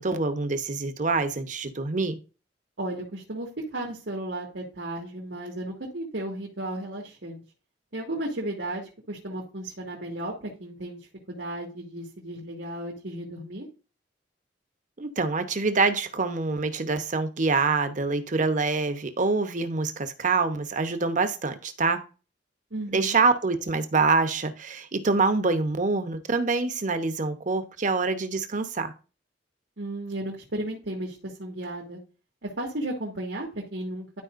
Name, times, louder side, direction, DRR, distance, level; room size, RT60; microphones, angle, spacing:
voice 1, 0.0-2.2 15.0-22.0 22.9-28.9, right 4 dB, 45° right, 9 dB, 0.9 m, -25 dB
voice 2, 2.8-7.4 7.9-11.0 11.3-13.7 22.7-23.2 29.8-32.0 32.4-34.2, right 1 dB, 85° right, -2 dB, 1.9 m, -34 dB
12.0 x 4.8 x 2.5 m, 0.33 s
head